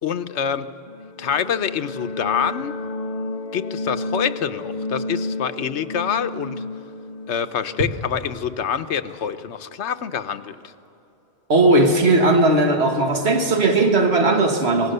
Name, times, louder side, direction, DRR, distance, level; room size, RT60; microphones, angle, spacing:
voice 1, 0.0-0.7 1.2-2.8 3.5-6.6 7.3-10.6, left 8 dB, 90° left, 1.1 m, -26 dB
sound 1, 0.9-9.4, left 2 dB, 40° left, 0.8 m, -32 dB
voice 2, 11.5-14.9, right 2 dB, 70° right, 1.8 m, -17 dB
25.5 x 19.0 x 6.7 m
omnidirectional pair, 1.1 m